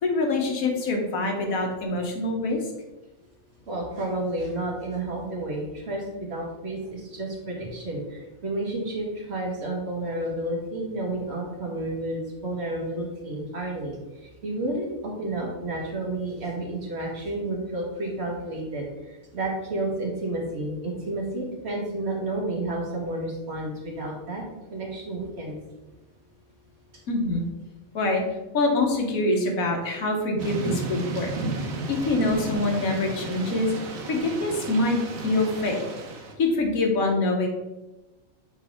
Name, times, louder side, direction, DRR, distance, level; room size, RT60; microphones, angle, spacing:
voice 1, 0.0-2.6 27.1-27.4 27.9-28.2 28.5-31.3 31.6-33.7 34.1-35.0 35.2-35.8 36.4-37.5, left 2 dB, 85° left, 2 dB, 1.5 m, -25 dB
voice 2, 3.7-24.4 24.7-25.6, right 2 dB, 50° right, -2 dB, 1.7 m, -31 dB
Thunder / Rain, 30.4-36.3, right 3 dB, 85° right, 1.3 m, -33 dB
7.1 x 4.4 x 3.6 m, 1.0 s
omnidirectional pair, 1.4 m